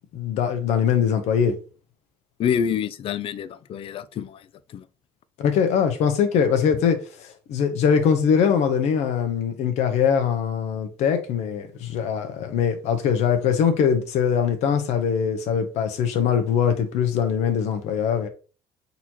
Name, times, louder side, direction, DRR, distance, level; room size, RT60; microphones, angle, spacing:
voice 1, 0.1-1.5 5.4-18.3, left 7 dB, 75° left, 1.0 m, -22 dB
voice 2, 2.4-4.4 4.7-4.8, left 8 dB, 55° left, 0.4 m, -27 dB
4.1 x 3.0 x 4.1 m
cardioid pair, 100°, 11 cm